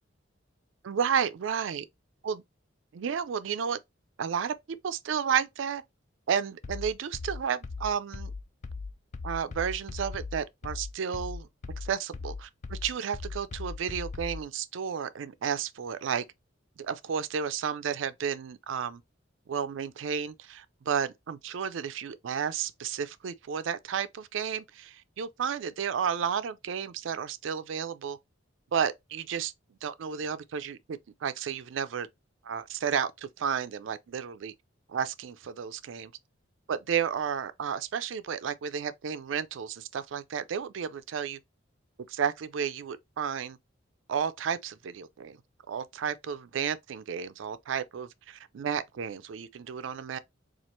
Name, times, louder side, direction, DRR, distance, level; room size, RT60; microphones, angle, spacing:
voice 1, 0.8-1.8 2.2-2.4 2.9-3.8 4.2-5.8 6.3-8.3 9.2-11.5 11.8-16.2 16.8-19.0 19.5-28.2 28.7-29.5 29.8-32.1 32.4-34.5 34.9-36.1 36.7-41.4 42.1-43.6 44.1-45.4 45.7-50.2, right 7 dB, 75° right, 0.4 m, -32 dB
sound 1, 6.6-14.5, left 4 dB, 35° left, 0.3 m, -38 dB
4.3 x 2.4 x 3.0 m
head